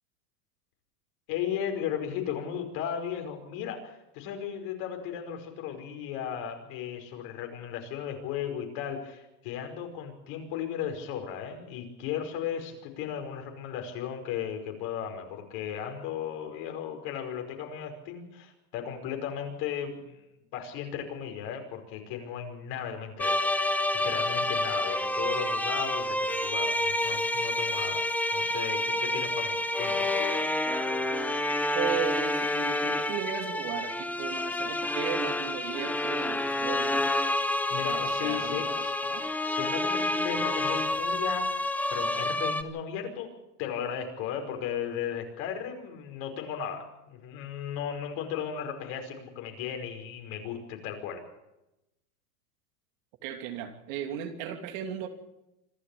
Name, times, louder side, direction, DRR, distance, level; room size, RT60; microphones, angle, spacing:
voice 1, 1.3-20.2 20.5-23.5 24.0-28.0 28.3-30.1 37.4-38.9 39.5-41.6 41.9-43.3 43.6-51.2, left 8 dB, 55° left, 4 dB, 5.4 m, -36 dB
sound 1, 23.2-42.6, left 1 dB, 5° left, 0.9 m, -29 dB
voice 2, 31.7-37.1 37.7-39.3 53.2-55.1, right 10 dB, 60° right, 5 dB, 3.0 m, -36 dB
26.0 x 12.5 x 8.6 m, 0.93 s
supercardioid pair, 130°, 46 cm